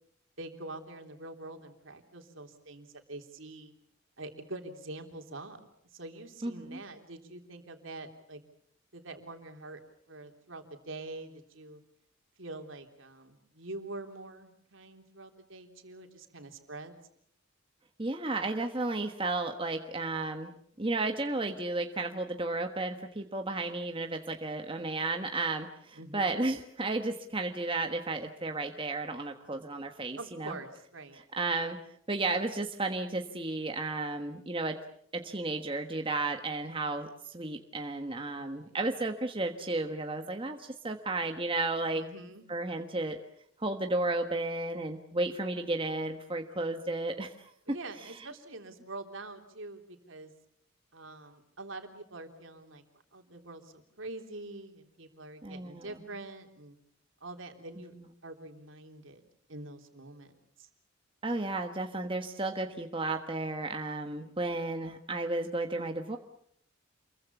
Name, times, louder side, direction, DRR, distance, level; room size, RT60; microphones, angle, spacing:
voice 1, 0.4-3.7 4.2-5.6 5.9-8.4 8.9-9.8 10.1-11.8 12.4-16.9 25.9-26.3 30.2-31.2 38.3-38.7 41.9-42.5 47.7-50.3 50.9-52.8 53.1-56.8 57.2-57.9 58.2-59.2 59.5-60.7, right 2 dB, 65° right, 5 dB, 3.5 m, -45 dB
voice 2, 6.4-6.8 18.0-20.5 20.8-30.5 31.4-31.8 32.1-34.8 35.1-42.0 42.5-43.2 43.6-47.5 55.4-55.9 61.2-66.2, right 2 dB, 25° right, 5 dB, 1.3 m, -33 dB
28.0 x 22.5 x 7.2 m, 0.67 s
head